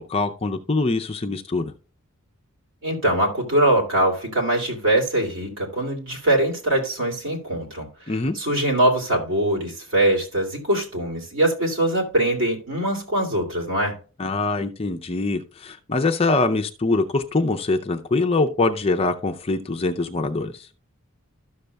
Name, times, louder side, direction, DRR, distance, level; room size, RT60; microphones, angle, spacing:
voice 1, 0.0-1.7 8.1-8.4 14.2-20.6, left 3 dB, 25° left, 0.5 m, -23 dB
voice 2, 2.8-14.0, right 1 dB, 60° right, 2.6 m, -22 dB
13.0 x 6.5 x 2.2 m
head